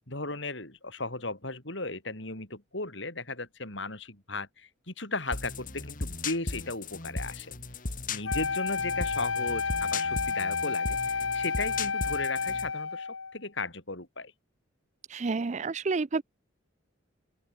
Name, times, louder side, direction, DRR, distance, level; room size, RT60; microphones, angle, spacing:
voice 1, 0.1-7.5 8.1-14.3, left 3 dB, 65° left, 5.4 m, -36 dB
sound 1, 5.3-12.7, left 3 dB, 40° left, 2.1 m, -37 dB
Wind instrument woodwind instrument, 8.2-13.4, left 5 dB, 85° left, 1.5 m, -31 dB
voice 2, 15.1-16.2, right 4 dB, 35° right, 0.4 m, -29 dB
open air
head